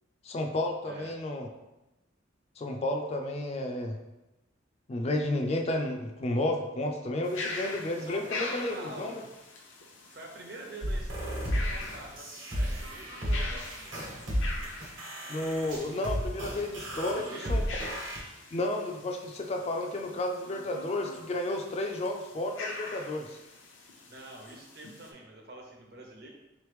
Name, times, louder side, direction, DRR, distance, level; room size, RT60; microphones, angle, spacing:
voice 1, 0.2-1.5 2.6-4.0 4.9-9.1 15.3-17.6 18.5-23.4, left 1 dB, 35° left, 3 dB, 0.3 m, -32 dB
voice 2, 0.9-1.2 8.0-9.3 10.1-14.0 16.8-17.6 24.0-26.3, right 1 dB, 55° right, 0 dB, 0.8 m, -46 dB
sound 1, 7.2-25.1, left 3 dB, 85° left, 0.6 m, -43 dB
sound 2, 10.8-18.2, equal, 75° right, 1.1 m, -33 dB
3.8 x 3.0 x 3.4 m, 0.99 s
head